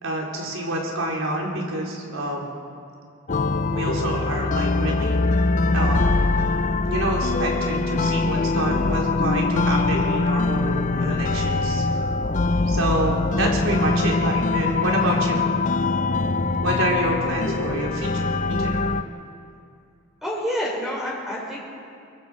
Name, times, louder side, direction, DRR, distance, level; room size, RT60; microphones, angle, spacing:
voice 1, 0.0-2.5 3.7-5.2 5.7-6.2 6.9-11.8 12.6-15.4 16.6-18.9, right 1 dB, 75° right, -2 dB, 4.4 m, -27 dB
sound 1, 3.3-19.0, left 3 dB, 35° left, 0.5 m, -23 dB
voice 2, 20.2-21.6, equal, ahead, -4 dB, 4.9 m, -28 dB
23.5 x 23.5 x 5.3 m, 2.4 s
head